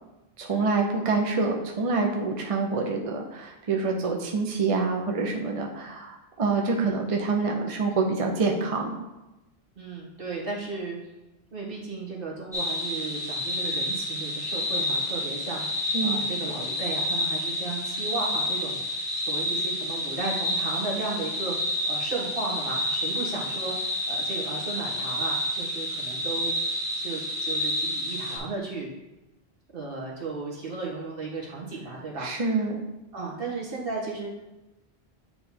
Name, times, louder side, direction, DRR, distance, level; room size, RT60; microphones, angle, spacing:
voice 1, 0.4-8.9 15.9-16.2 32.2-32.8, right 4 dB, 40° right, 1 dB, 0.6 m, -26 dB
voice 2, 9.7-11.0 11.5-15.6 16.0-18.8 19.2-26.5 27.0-28.9 29.7-32.6 33.1-34.3, right 3 dB, 60° right, -3 dB, 1.7 m, -35 dB
sound 1, 12.5-28.4, left 1 dB, 5° right, 1.4 m, -29 dB
8.8 x 3.3 x 4.2 m, 0.99 s
omnidirectional pair, 1.1 m